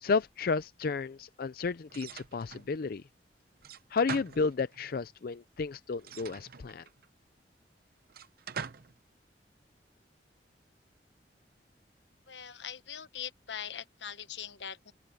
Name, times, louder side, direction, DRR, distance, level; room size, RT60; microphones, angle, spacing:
voice 1, 0.0-3.0 3.9-6.8, left 4 dB, 55° left, 0.5 m, -32 dB
sound 1, 1.9-2.7 3.6-4.9 6.0-7.1 8.1-9.0, right 6 dB, 55° right, 0.7 m, -43 dB
voice 2, 12.3-14.9, left 8 dB, 85° left, 1.1 m, -42 dB
open air
head